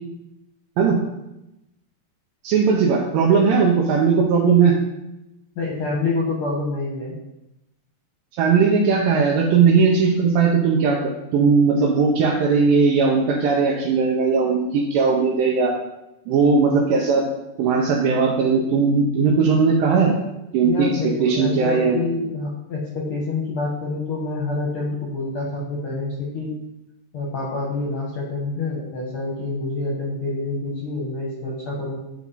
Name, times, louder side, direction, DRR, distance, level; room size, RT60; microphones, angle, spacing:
voice 1, 2.4-4.7 8.4-11.0 11.3-15.7 16.3-17.2 17.6-20.2 20.5-20.9 21.2-22.1, right 5 dB, 85° right, -1 dB, 2.5 m, -18 dB
voice 2, 5.5-7.2 20.6-26.5 27.1-32.0, left 3 dB, 60° left, -3 dB, 1.5 m, -27 dB
8.2 x 4.5 x 4.0 m, 0.90 s
omnidirectional pair, 4.0 m